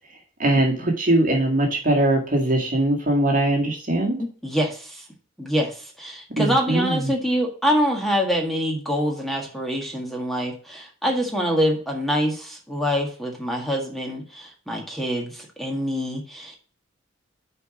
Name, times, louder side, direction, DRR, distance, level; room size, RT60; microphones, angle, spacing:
voice 1, 0.4-4.2 6.4-7.1, right 1 dB, 45° right, 0 dB, 2.0 m, -21 dB
voice 2, 4.2-5.0 5.4-16.6, equal, ahead, 0 dB, 1.6 m, -25 dB
6.9 x 4.8 x 6.2 m, 0.40 s
head